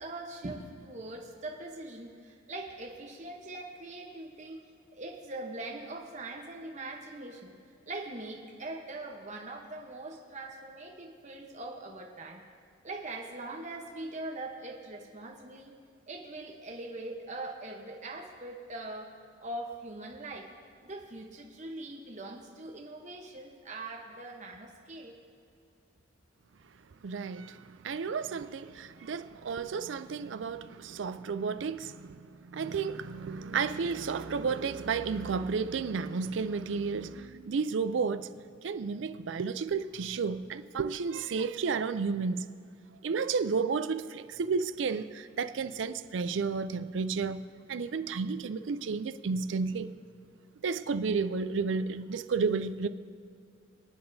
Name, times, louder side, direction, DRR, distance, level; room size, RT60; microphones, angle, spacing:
voice 1, 0.0-4.6 4.9-7.6 7.9-12.4 12.8-15.7 16.1-19.1 19.4-20.5 20.8-25.1, right 2 dB, 40° right, 0.9 m, -42 dB
voice 2, 27.0-38.3 38.6-42.5 43.0-49.9 50.6-52.9, right 5 dB, 70° right, 0.4 m, -32 dB
24.5 x 8.8 x 2.7 m
head